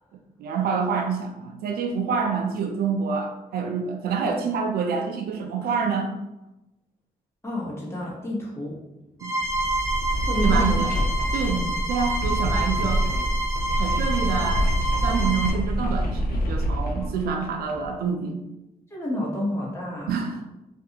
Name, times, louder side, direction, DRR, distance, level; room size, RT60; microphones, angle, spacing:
voice 1, 0.4-6.1 9.2-9.3 10.4-10.9 11.3-11.6 11.9-13.0 13.8-14.7 15.0-18.4 20.1-20.4, right 5 dB, 85° right, 4 dB, 0.4 m, -27 dB
voice 2, 7.4-8.7 10.3-10.8 11.5-11.7 17.0-17.1 18.9-20.2, left 1 dB, 15° left, -4 dB, 1.0 m, -29 dB
sound 1, 9.2-15.5, right 1 dB, 20° right, 0.5 m, -28 dB
sound 2, 9.4-17.9, equal, 70° left, 0.4 m, -26 dB
2.5 x 2.3 x 2.7 m, 0.95 s
cardioid pair, 75°, 16 cm